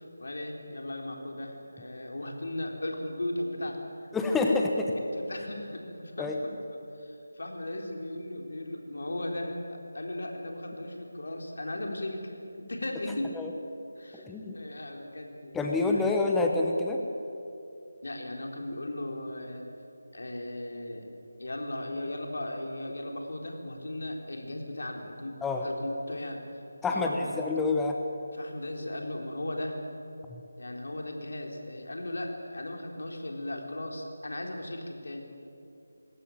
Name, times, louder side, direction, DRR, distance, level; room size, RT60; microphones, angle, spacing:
voice 1, 0.0-4.1 4.7-4.8 5.1-13.4 14.0-14.3 14.5-16.0 18.0-19.7 20.1-21.1 21.4-26.6 26.9-27.3 28.3-29.8 30.6-35.3, left 1 dB, 65° left, 2 dB, 3.9 m, -37 dB
voice 2, 4.1-4.9 6.2-6.3 13.4-13.5 14.1-14.6 15.5-17.0 25.4-25.7 26.8-27.9 30.3-30.4, left 3 dB, 5° left, 1 dB, 1.1 m, -27 dB
21.5 x 16.5 x 9.2 m, 2.7 s
figure-of-eight pair, 160°, 0 cm